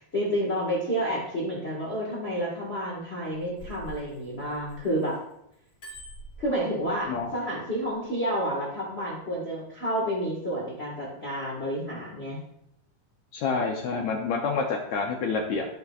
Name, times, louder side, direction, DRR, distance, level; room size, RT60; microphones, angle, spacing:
voice 1, 0.0-5.2 6.4-12.4, equal, 60° left, -4 dB, 0.6 m, -30 dB
Bicycle bell, 3.2-5.1 5.5-7.2 7.8-8.0, right 1 dB, 20° left, 2.5 m, -45 dB
voice 2, 13.3-15.6, left 4 dB, 75° left, 0 dB, 1.7 m, -28 dB
13.5 x 5.8 x 2.4 m, 0.79 s
omnidirectional pair, 4.2 m